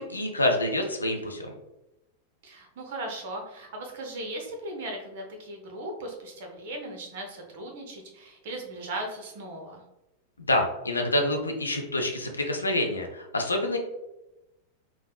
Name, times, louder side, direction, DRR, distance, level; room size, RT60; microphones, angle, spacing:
voice 1, 0.0-1.5 10.5-13.8, left 1 dB, 80° left, 3 dB, 0.4 m, -27 dB
voice 2, 2.4-9.8, right 1 dB, 55° right, 3 dB, 0.7 m, -38 dB
3.5 x 2.0 x 2.3 m, 0.94 s
figure-of-eight pair, 90°, 0 cm